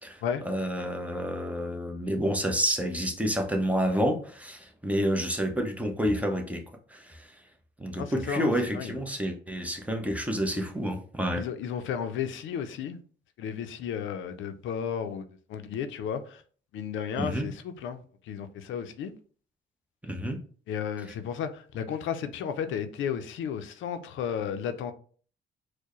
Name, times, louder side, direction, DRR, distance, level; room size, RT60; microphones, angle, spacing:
voice 1, 0.0-6.6 6.9-7.3 7.8-11.4 17.2-17.5 20.0-20.4, equal, 5° right, 0.7 m, -29 dB
voice 2, 8.0-9.0 11.3-13.0 13.4-16.4 16.7-19.1 20.7-24.9, left 7 dB, 75° left, 0.5 m, -33 dB
4.4 x 2.1 x 3.0 m
cardioid pair, 90°, 20 cm